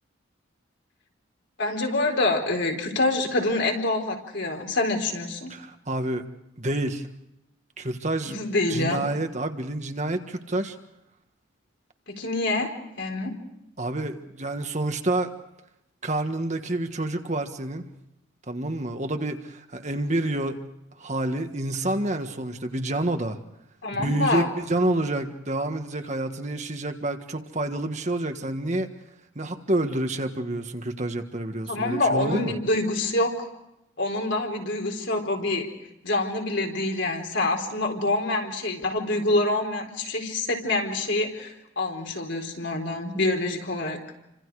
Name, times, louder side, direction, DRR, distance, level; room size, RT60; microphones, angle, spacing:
voice 1, 1.6-5.5 8.3-9.0 12.1-13.4 23.8-24.5 31.7-33.5 34.0-35.7 36.0-44.0, left 2 dB, 60° left, 2 dB, 4.2 m, -26 dB
voice 2, 5.5-6.2 6.6-7.1 7.8-8.4 8.7-10.8 13.8-15.3 16.0-17.8 18.5-20.6 21.0-23.4 24.0-28.9 29.3-32.5, right 1 dB, 35° right, 6 dB, 1.6 m, -28 dB
29.5 x 26.0 x 4.9 m, 0.86 s
head